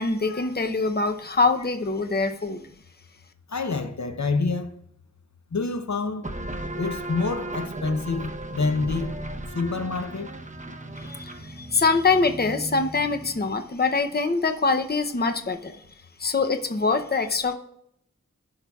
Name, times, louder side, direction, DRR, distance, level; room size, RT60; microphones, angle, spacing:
voice 1, 0.0-2.6 11.0-15.8 16.2-17.5, left 4 dB, 35° left, 0.7 m, -24 dB
voice 2, 3.5-4.7 5.5-6.3 6.7-9.1 9.5-10.3, left 4 dB, 70° left, 0.7 m, -27 dB
sound 1, 6.2-13.6, right 1 dB, 25° right, 0.8 m, -36 dB
14.5 x 5.6 x 2.4 m
wide cardioid pair, 45°, 29 cm